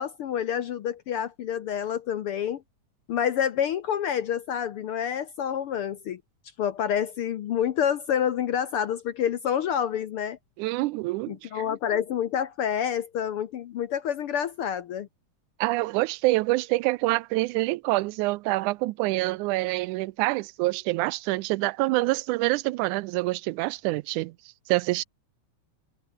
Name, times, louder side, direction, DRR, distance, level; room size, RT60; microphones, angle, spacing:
voice 1, 0.0-2.6 3.1-6.2 6.6-10.4 11.3-15.1, left 9 dB, 65° left, 1.4 m, -28 dB
voice 2, 10.6-11.6 15.6-24.3 24.7-25.0, right 20 dB, 85° right, 2.0 m, -26 dB
omnidirectional pair, 3.5 m